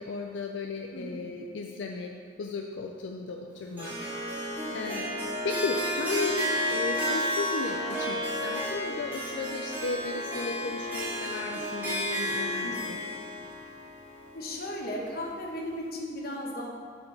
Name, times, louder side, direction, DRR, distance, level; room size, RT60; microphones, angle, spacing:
voice 1, 0.0-2.1 2.4-4.0 4.2-4.4 4.7-5.1 5.4-13.0, left 3 dB, 85° left, 2 dB, 0.4 m, -35 dB
voice 2, 0.9-1.2 12.6-12.9 14.3-16.7, left 1 dB, 55° left, -1 dB, 1.0 m, -36 dB
Harp, 3.8-15.0, equal, 10° right, 1.3 m, -32 dB
5.5 x 4.3 x 5.3 m, 2.1 s
head